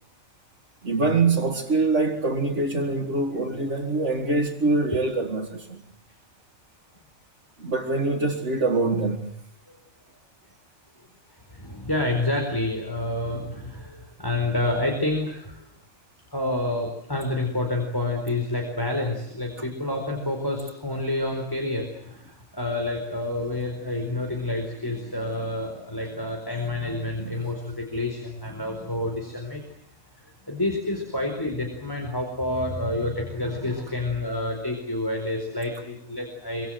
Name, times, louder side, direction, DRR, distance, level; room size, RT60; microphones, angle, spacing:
voice 1, 0.8-5.8 7.6-9.3 27.2-27.4, right 3 dB, 60° right, 2.6 m, -24 dB
voice 2, 11.5-15.7 16.3-29.6 30.5-36.7, left 2 dB, 15° left, 4.5 m, -28 dB
26.0 x 25.5 x 7.8 m
omnidirectional pair, 1.4 m